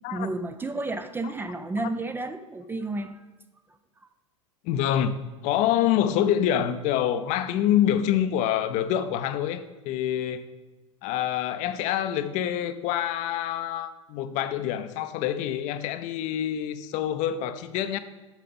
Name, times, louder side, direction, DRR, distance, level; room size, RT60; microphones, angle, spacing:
voice 1, 0.1-3.3, right 2 dB, 10° right, 9 dB, 0.4 m, -31 dB
voice 2, 4.6-5.2 5.4-10.5 11.0-18.0, left 10 dB, 45° left, 11 dB, 0.6 m, -26 dB
7.2 x 6.5 x 5.4 m, 1.2 s
hypercardioid pair, 90°, 17 cm